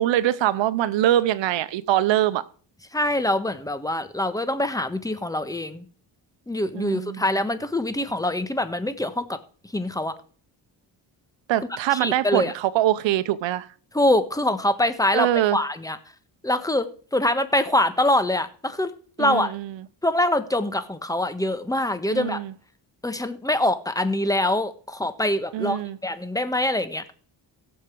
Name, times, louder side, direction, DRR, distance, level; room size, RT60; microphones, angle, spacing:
voice 1, 0.0-2.5 6.7-7.2 11.5-13.7 15.1-15.6 19.2-19.7 22.1-22.5 25.5-26.0, right 13 dB, 75° right, 0.9 m, -23 dB
voice 2, 2.9-5.8 6.5-9.4 9.7-10.1 11.9-12.5 13.9-16.0 16.4-16.9 17.1-18.9 19.2-19.5 20.0-22.4 23.0-27.0, left 1 dB, 10° left, 1.4 m, -24 dB
16.5 x 7.4 x 4.7 m
cardioid pair, 85°, 44 cm